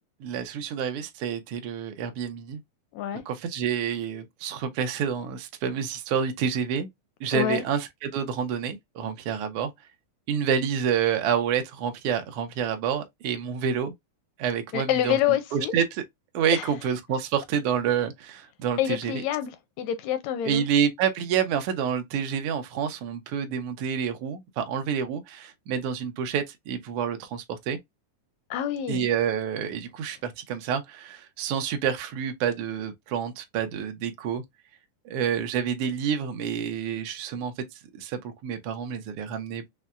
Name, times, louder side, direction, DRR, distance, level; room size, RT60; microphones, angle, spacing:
voice 1, 0.2-2.6 3.3-6.9 7.2-9.7 10.3-13.9 14.4-15.8 16.3-19.2 20.4-27.8 28.9-34.4 35.0-37.5 38.0-39.6, right 8 dB, 85° right, 1.2 m, -28 dB
voice 2, 7.3-7.6 14.7-15.7 16.5-16.6 18.8-20.6 28.5-29.1, left 11 dB, 80° left, 1.6 m, -27 dB
5.5 x 2.1 x 2.3 m
omnidirectional pair, 3.5 m